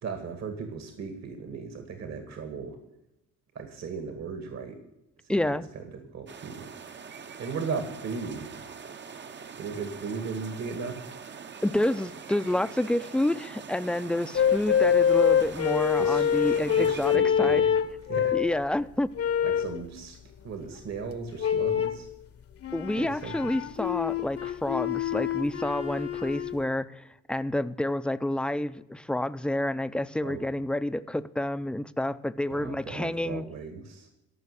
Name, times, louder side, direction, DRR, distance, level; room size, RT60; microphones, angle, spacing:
voice 1, 0.0-2.8 3.6-4.8 5.2-6.7 7.4-8.6 9.6-11.0 16.0-16.3 16.8-17.7 18.1-18.4 19.4-20.2 20.4-22.1 23.0-23.5 30.2-30.5 32.5-34.1, right 5 dB, 60° right, 7 dB, 2.0 m, -37 dB
voice 2, 5.3-5.6 11.6-17.6 18.3-19.1 22.7-33.4, left 1 dB, 5° left, 14 dB, 0.5 m, -29 dB
sound 1, 6.3-17.2, right 6 dB, 35° right, 0.8 m, -43 dB
sound 2, 14.3-18.6 19.2-19.8 21.4-22.0 22.6-26.6, left 8 dB, 50° left, 1.0 m, -25 dB
14.0 x 5.8 x 9.9 m, 0.90 s
cardioid pair, 90°, 30 cm